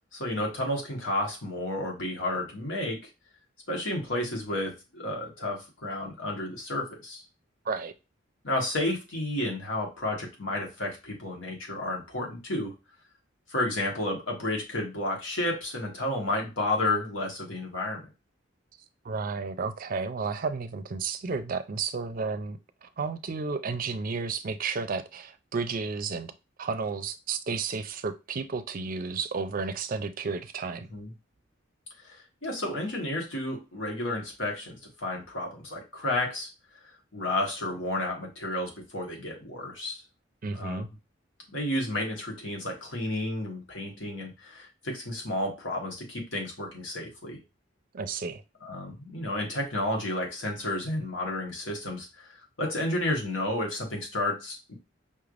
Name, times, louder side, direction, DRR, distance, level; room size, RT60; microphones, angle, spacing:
voice 1, 0.1-3.1 3.7-7.2 8.4-12.7 13.5-18.0 30.9-31.1 32.0-36.5 37.1-40.0 40.5-40.8 41.5-47.4 48.6-52.3 52.6-54.7, left 1 dB, 90° left, 1 dB, 1.6 m, -31 dB
voice 2, 19.0-26.3 26.6-30.9 40.4-40.9 47.9-48.4, right 4 dB, 45° right, 10 dB, 0.5 m, -32 dB
5.4 x 3.3 x 2.5 m, 0.26 s
head